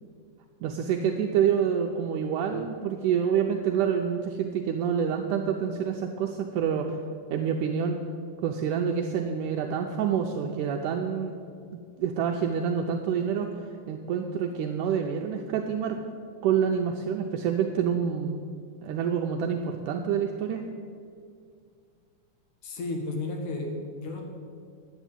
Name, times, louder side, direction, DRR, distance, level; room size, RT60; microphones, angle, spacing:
voice 1, 0.6-7.0 7.3-8.0 8.4-11.3 12.0-16.0 16.4-18.4 18.8-20.6, right 7 dB, 80° right, 3 dB, 2.0 m, -27 dB
voice 2, 22.6-23.7 24.0-24.2, left 3 dB, 65° left, 1 dB, 2.9 m, -32 dB
9.9 x 8.2 x 9.0 m, 2.2 s
omnidirectional pair, 3.9 m